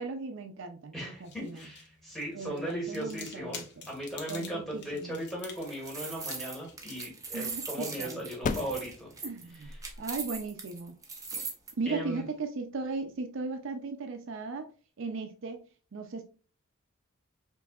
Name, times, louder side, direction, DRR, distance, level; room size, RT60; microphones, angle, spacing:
voice 1, 0.0-1.7 2.3-3.9 4.3-5.2 7.3-8.2 9.2-11.0 11.8-14.7 15.0-15.6 15.9-16.2, right 4 dB, 65° right, 0.5 m, -37 dB
voice 2, 0.9-3.6 3.9-9.1 11.9-12.2, right 1 dB, ahead, 1.8 m, -37 dB
sound 1, 1.0-9.4, left 6 dB, 55° left, 0.8 m, -51 dB
sound 2, 5.4-11.7, right 4 dB, 15° right, 0.8 m, -40 dB
Single Firework, 7.2-13.1, left 4 dB, 40° left, 0.3 m, -42 dB
5.3 x 2.7 x 2.4 m
head